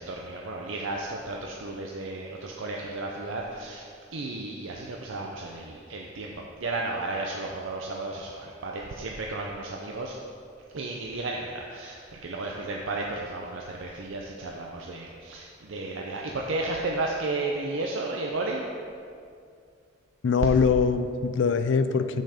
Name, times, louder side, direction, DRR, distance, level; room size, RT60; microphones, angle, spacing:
voice 1, 0.0-10.2 10.7-18.7, right 2 dB, 80° right, -1 dB, 0.6 m, -33 dB
voice 2, 20.2-22.2, left 5 dB, 65° left, 10 dB, 0.4 m, -23 dB
6.8 x 6.3 x 4.9 m, 2.3 s
head